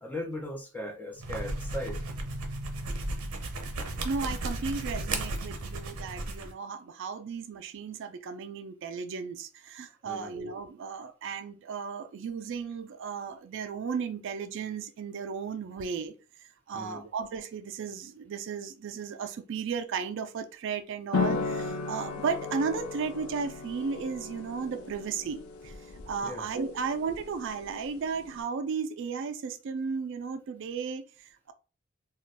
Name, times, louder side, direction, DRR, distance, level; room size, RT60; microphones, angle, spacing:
voice 1, 0.0-2.0 10.0-10.4 16.7-17.1 26.2-26.5, left 1 dB, 10° left, 0.5 m, -38 dB
sound 1, 1.1-6.5, right 2 dB, 90° right, 0.7 m, -34 dB
voice 2, 4.0-25.7 26.1-31.5, right 5 dB, 60° right, 0.3 m, -35 dB
sound 2, 21.1-28.4, left 4 dB, 85° left, 0.4 m, -36 dB
2.4 x 2.2 x 3.9 m
head